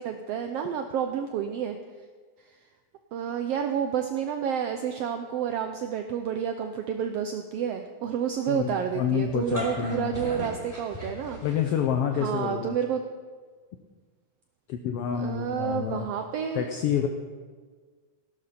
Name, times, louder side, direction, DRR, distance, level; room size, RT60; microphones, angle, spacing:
voice 1, 0.0-1.8 3.1-11.4 12.2-13.0 15.2-16.7, right 8 dB, 75° right, 6 dB, 1.5 m, -30 dB
voice 2, 8.5-10.2 11.4-12.8 14.7-16.1 16.5-17.1, left 8 dB, 75° left, 5 dB, 1.5 m, -28 dB
sound 1, 9.3-11.9, equal, 5° right, 2.8 m, -36 dB
15.0 x 12.0 x 4.3 m, 1.5 s
omnidirectional pair, 3.4 m